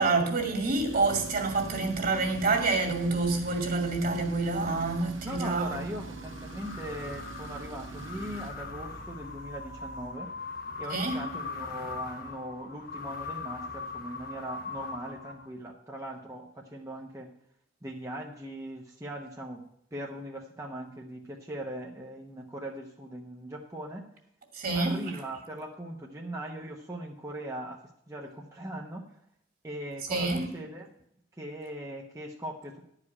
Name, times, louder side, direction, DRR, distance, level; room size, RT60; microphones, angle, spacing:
voice 1, 0.0-5.9 10.9-11.2 24.5-25.0 30.1-30.5, right 3 dB, 50° right, 2.4 m, -27 dB
Tools, 0.8-10.2, right 4 dB, 80° right, 1.3 m, -44 dB
voice 2, 5.2-10.3 10.8-17.3 17.8-19.6 19.9-24.1 24.7-27.8 28.1-29.2 29.6-30.9 31.3-32.8, right 1 dB, 15° right, 0.9 m, -40 dB
sound 1, 5.9-15.7, left 4 dB, 50° left, 1.1 m, -40 dB
11.0 x 5.0 x 8.5 m
head